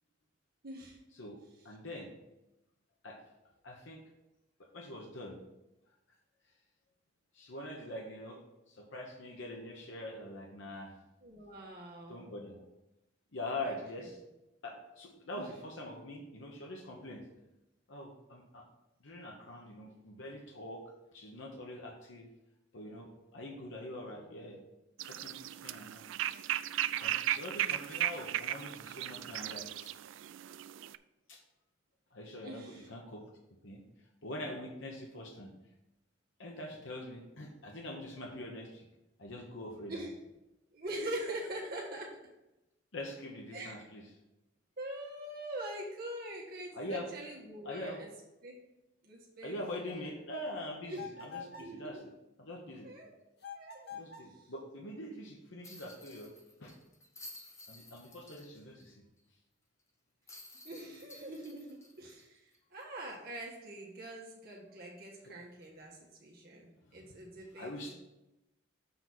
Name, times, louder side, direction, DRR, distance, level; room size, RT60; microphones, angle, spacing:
voice 1, 0.6-1.0 11.2-12.3 13.6-13.7 15.3-15.5 32.3-32.9 39.9-40.1 40.7-42.1 43.5-43.8 44.8-48.1 48.4-48.6 49.0-50.1 50.8-52.0 52.8-53.1 53.5-53.9 54.3-54.5 60.6-68.0, right 1 dB, 50° right, -3 dB, 1.5 m, -44 dB
voice 2, 1.6-2.2 3.0-3.2 3.6-4.0 4.6-5.4 7.3-10.9 12.1-12.6 13.3-14.2 14.6-17.2 17.9-18.7 19.0-20.8 21.1-22.3 22.7-24.6 25.0-26.4 26.9-29.9 31.3-31.4 32.1-33.2 33.6-33.8 34.2-35.5 36.4-38.9 39.2-39.9 42.9-44.0 46.7-47.1 47.6-48.1 49.4-52.0 52.4-52.9 53.9-56.3 56.6-56.7 57.7-59.0 65.2-65.3 66.9-67.0 67.5-68.0, left 1 dB, 75° left, 0 dB, 1.1 m, -44 dB
sound 1, 25.0-31.0, right 12 dB, 75° right, 0.3 m, -36 dB
Fx Bocina, 50.9-51.8 53.4-54.4, left 6 dB, 55° left, 1.2 m, -46 dB
sound 2, 55.6-58.9 59.2-59.3 60.3-63.0 63.4-63.5 65.6-65.8, left 2 dB, 15° left, 0.8 m, -54 dB
7.0 x 4.0 x 6.0 m, 0.94 s
head